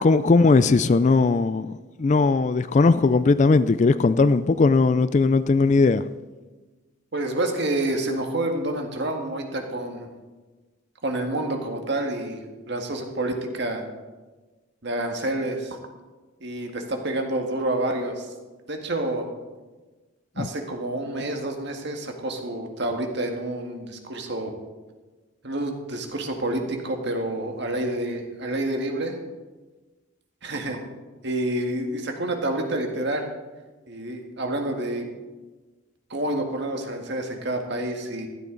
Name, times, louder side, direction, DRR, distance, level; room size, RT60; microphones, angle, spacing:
voice 1, 0.0-6.0 20.4-20.5, left 3 dB, 35° left, 0.3 m, -19 dB
voice 2, 7.1-10.1 11.0-12.4 12.7-13.8 14.8-15.8 16.4-18.3 18.7-19.3 20.4-24.5 25.4-29.2 30.4-30.8 31.2-33.3 33.9-35.0 36.1-38.3, right 1 dB, 55° right, 1.8 m, -28 dB
15.0 x 12.5 x 3.9 m
head